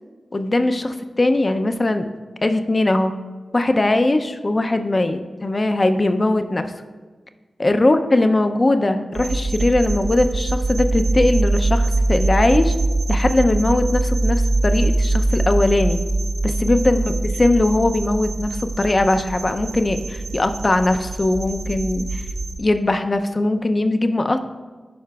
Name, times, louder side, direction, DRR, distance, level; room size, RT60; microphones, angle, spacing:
voice 1, 0.3-2.1 2.4-3.1 3.5-6.7 7.6-12.7 13.1-16.0 16.4-22.2 22.6-24.4, left 2 dB, 30° left, 8 dB, 0.4 m, -20 dB
sound 1, 9.1-22.6, right 2 dB, 80° right, 0.9 m, -23 dB
11.0 x 4.8 x 2.3 m, 1.4 s
wide cardioid pair, 95°, 0 cm